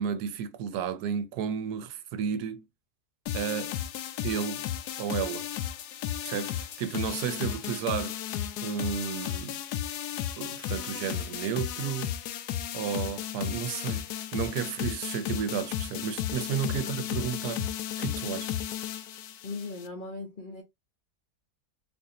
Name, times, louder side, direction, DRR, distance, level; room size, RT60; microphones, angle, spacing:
voice 1, 0.0-2.7 3.3-3.8 4.2-4.7 5.0-5.5 6.2-8.2 8.6-9.6 10.4-12.1 12.7-17.7 18.0-18.5, right 8 dB, 80° right, 1.1 m, -32 dB
sound 1, 3.3-19.9, left 11 dB, 80° left, 1.1 m, -34 dB
voice 2, 19.4-20.6, left 3 dB, 50° left, 0.6 m, -38 dB
4.0 x 2.6 x 2.6 m
omnidirectional pair, 1.7 m